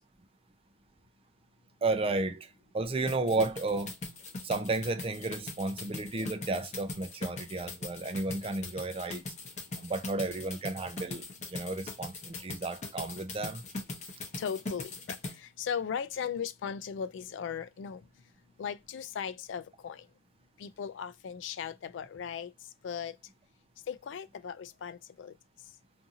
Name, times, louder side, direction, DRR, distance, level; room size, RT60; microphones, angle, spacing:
voice 1, 1.8-2.5 2.7-3.9 4.4-9.2 9.8-11.2 11.5-13.6, right 2 dB, 30° right, 0.5 m, -32 dB
sound 1, 3.1-15.4, left 2 dB, 40° left, 0.8 m, -41 dB
voice 2, 14.4-18.0 18.6-20.0 20.6-22.5 22.8-23.1 23.9-25.3, left 7 dB, 70° left, 0.3 m, -37 dB
2.6 x 2.6 x 2.6 m
head